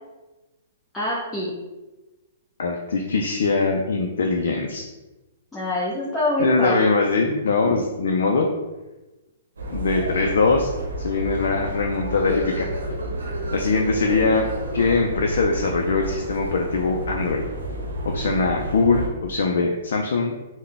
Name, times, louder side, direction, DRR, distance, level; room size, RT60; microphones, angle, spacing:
voice 1, 0.9-1.5 5.5-7.1 7.7-7.8, left 1 dB, 10° left, -8 dB, 0.8 m, -25 dB
voice 2, 2.6-4.9 6.4-8.5 9.7-10.7 11.0-12.7 13.5-14.5 14.7-17.4 18.1-20.4, left 4 dB, 70° left, 2 dB, 0.3 m, -22 dB
sound 1, 9.6-19.1, right 1 dB, 85° right, 0.8 m, -30 dB
3.6 x 2.1 x 3.4 m, 1.1 s
hypercardioid pair, 125°, 0 cm